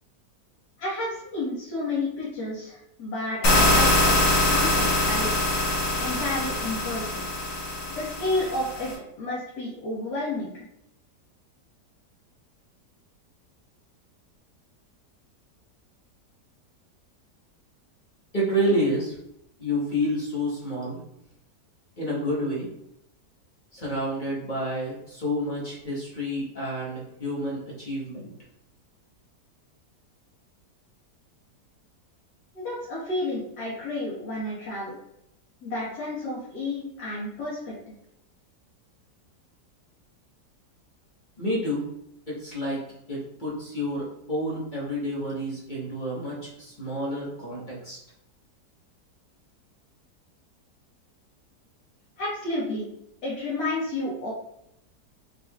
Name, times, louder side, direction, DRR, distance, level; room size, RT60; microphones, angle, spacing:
voice 1, 0.8-5.5 6.0-7.2 7.9-8.9 9.2-10.7 32.5-35.0 35.6-37.7 52.2-52.8 53.2-54.3, left 2 dB, 75° left, -8 dB, 2.0 m, -31 dB
sound 1, 3.4-8.9, left 1 dB, 50° left, 1.5 m, -23 dB
voice 2, 18.3-19.2 19.6-21.0 22.0-22.7 23.7-28.3 41.4-41.8 42.3-48.0, equal, 30° left, -5 dB, 1.3 m, -29 dB
5.8 x 3.5 x 2.4 m, 0.80 s
omnidirectional pair, 1.8 m